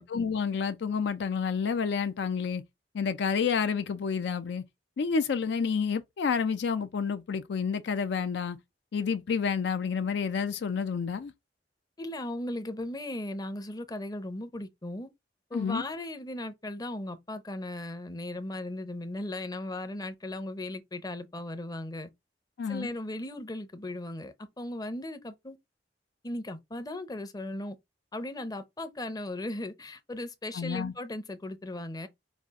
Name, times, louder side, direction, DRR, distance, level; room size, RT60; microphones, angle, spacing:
voice 1, 0.0-2.6 2.9-4.6 5.0-8.6 8.9-11.3 15.5-15.8 22.6-22.9 30.5-30.9, left 6 dB, 65° left, 0.4 m, -29 dB
voice 2, 12.0-15.1 15.5-22.1 22.7-25.6 26.2-27.8 28.1-32.1, left 1 dB, 20° left, 0.6 m, -37 dB
5.2 x 2.4 x 3.5 m
head